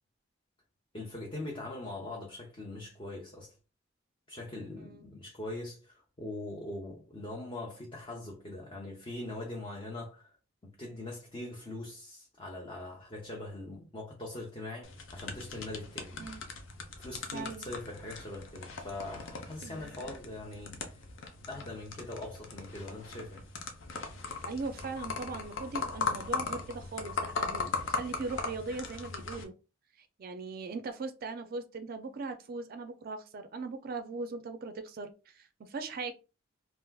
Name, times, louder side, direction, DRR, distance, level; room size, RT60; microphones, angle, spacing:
voice 1, 0.9-3.6 4.3-10.3 10.6-16.2 17.0-21.0 21.5-23.5, left 2 dB, 25° left, 0.6 m, -42 dB
voice 2, 4.8-5.1 16.2-16.4 17.3-17.7 19.6-19.9 24.4-29.5 30.0-36.1, right 3 dB, 50° right, 0.4 m, -40 dB
sound 1, 14.8-29.4, left 4 dB, 70° left, 0.6 m, -39 dB
3.3 x 2.5 x 2.3 m
head